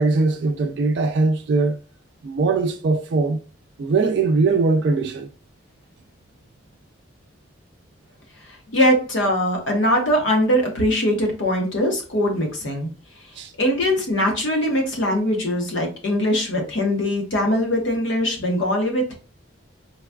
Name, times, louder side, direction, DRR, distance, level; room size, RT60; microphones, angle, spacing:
voice 1, 0.0-1.8 2.2-3.4 3.8-5.3 13.4-13.5, right 3 dB, 60° right, 0.3 m, -20 dB
voice 2, 8.7-12.9 13.6-19.1, equal, 70° left, 0.9 m, -21 dB
3.9 x 2.3 x 2.2 m
head